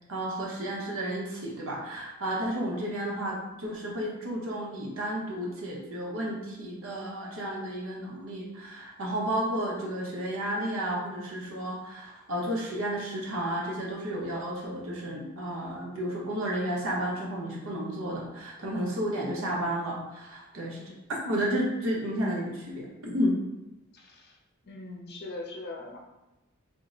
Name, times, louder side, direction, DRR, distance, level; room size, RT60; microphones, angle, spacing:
voice 1, 0.1-20.9 21.2-23.3, right 1 dB, 70° right, -3 dB, 0.9 m, -32 dB
voice 2, 2.8-3.1 23.9-24.4 24.6-26.0, left 2 dB, 50° left, 1 dB, 0.6 m, -41 dB
3.6 x 2.1 x 3.7 m, 0.99 s
head